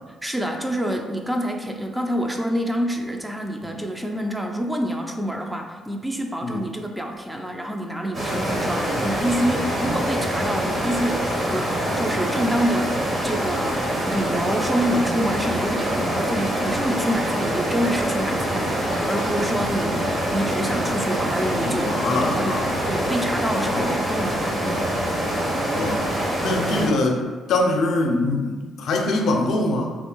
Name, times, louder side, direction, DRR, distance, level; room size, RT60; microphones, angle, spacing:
voice 1, 0.2-24.9, equal, 10° right, 3 dB, 0.4 m, -27 dB
sound 1, 8.1-26.9, right 1 dB, 35° right, 0.9 m, -25 dB
voice 2, 21.7-22.7 23.6-24.0 25.7-26.0 26.4-29.9, left 2 dB, 70° left, 2 dB, 0.5 m, -24 dB
2.9 x 2.3 x 3.8 m, 1.4 s
cardioid pair, 90°, 0 cm